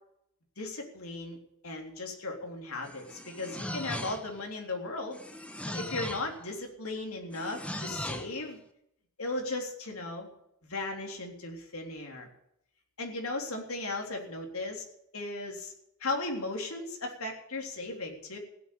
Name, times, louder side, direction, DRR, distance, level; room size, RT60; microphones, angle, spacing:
voice 1, 0.6-1.4 1.6-5.2 5.7-8.6 9.2-10.3 10.6-12.3 13.0-14.8 15.1-15.7 16.0-18.4, left 2 dB, 80° left, 2 dB, 3.7 m, -36 dB
sound 1, 2.8-4.4 5.1-6.4 7.3-8.4, left 1 dB, 5° left, 1.1 m, -38 dB
16.0 x 8.5 x 9.3 m, 0.75 s
head